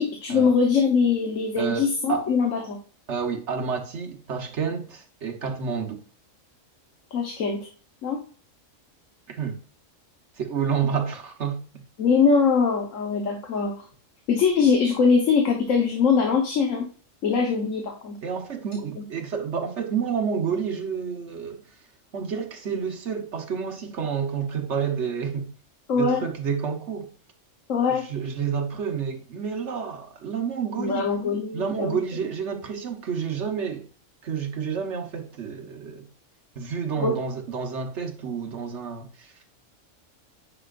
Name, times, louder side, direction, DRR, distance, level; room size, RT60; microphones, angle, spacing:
voice 1, 0.0-2.8 7.1-7.7 8.0-8.2 12.0-13.9 14.3-16.9 17.2-18.2 25.9-26.3 27.7-28.0 30.8-32.0 37.0-37.2, left 5 dB, 90° left, 1.5 m, -22 dB
voice 2, 1.6-2.3 3.1-6.0 9.3-9.6 10.4-11.6 18.2-21.6 22.1-25.5 25.9-27.1 27.9-31.1 31.5-33.9 34.2-36.1 36.5-39.3, right 6 dB, 65° right, 1.5 m, -29 dB
9.6 x 5.0 x 2.5 m
omnidirectional pair, 1.3 m